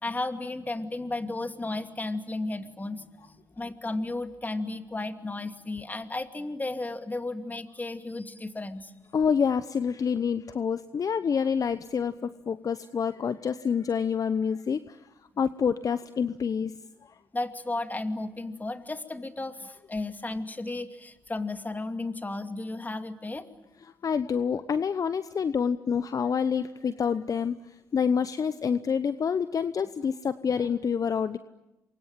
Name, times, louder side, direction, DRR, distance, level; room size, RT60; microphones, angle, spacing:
voice 1, 0.0-8.9 17.3-23.5, left 2 dB, 20° left, 8 dB, 2.6 m, -34 dB
voice 2, 9.1-15.0 15.4-17.1 24.0-31.4, left 6 dB, 45° left, 13 dB, 0.9 m, -27 dB
28.0 x 23.5 x 9.1 m, 1.0 s
hypercardioid pair, 50°, 8 cm